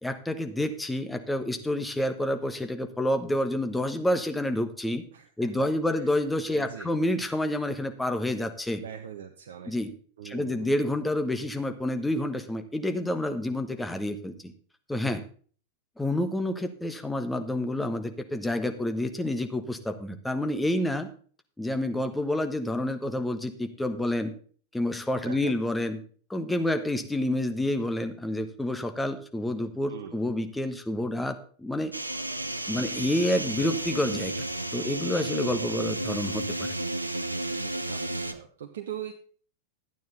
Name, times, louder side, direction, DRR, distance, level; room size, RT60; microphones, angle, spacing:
voice 1, 0.0-5.0 5.4-8.8 9.7-9.9 10.2-14.5 14.9-15.2 16.0-21.1 21.6-24.3 24.7-26.0 26.3-31.9 32.7-34.3 34.7-36.7, left 1 dB, 5° left, 7 dB, 1.3 m, -28 dB
voice 2, 6.5-6.9 8.8-9.7 10.2-10.7 25.2-25.5 29.9-30.2 37.9-39.1, right 9 dB, 60° right, 4 dB, 1.0 m, -40 dB
sound 1, 31.9-38.3, right 1 dB, 85° right, 0.8 m, -32 dB
12.5 x 9.3 x 4.0 m, 0.43 s
figure-of-eight pair, 90°, 0 cm